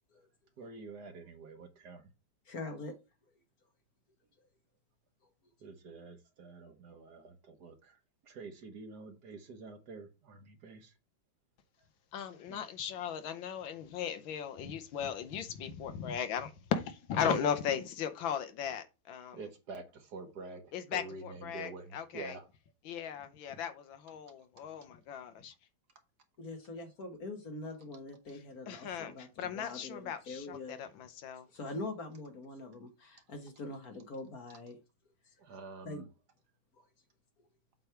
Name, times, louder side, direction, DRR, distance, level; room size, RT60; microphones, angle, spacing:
voice 1, 0.6-2.1 5.6-11.0 11.8-11.9 12.5-12.6 19.3-22.5 24.4-24.5 30.8-30.9 35.4-36.1, right 3 dB, 55° right, 1.5 m, -48 dB
voice 2, 2.5-2.9 17.2-17.4 26.4-30.8 31.5-34.8 35.8-36.0, left 2 dB, 50° left, 1.6 m, -43 dB
voice 3, 12.1-19.4 20.7-22.3 22.9-25.5 28.7-31.5, left 8 dB, 75° left, 1.5 m, -37 dB
7.9 x 3.3 x 5.7 m
omnidirectional pair, 2.2 m